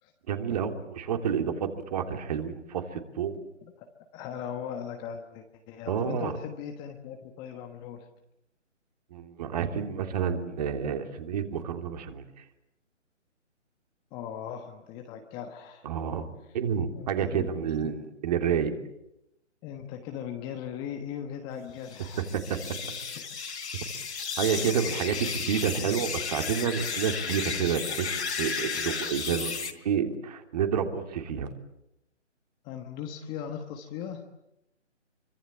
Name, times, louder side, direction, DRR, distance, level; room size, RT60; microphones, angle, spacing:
voice 1, 0.3-3.3 5.9-6.3 9.1-12.4 15.8-18.7 22.3-22.4 24.4-31.5, right 7 dB, 35° right, 6 dB, 3.0 m, -29 dB
voice 2, 4.1-8.1 14.1-15.8 16.9-17.5 17.8-18.0 19.6-22.3 23.1-23.2 24.6-25.0 32.6-34.2, left 8 dB, 10° left, 4 dB, 1.3 m, -39 dB
sound 1, 21.9-29.7, left 5 dB, 65° left, 4.0 m, -33 dB
26.5 x 24.5 x 8.6 m, 0.86 s
figure-of-eight pair, 150°, 37 cm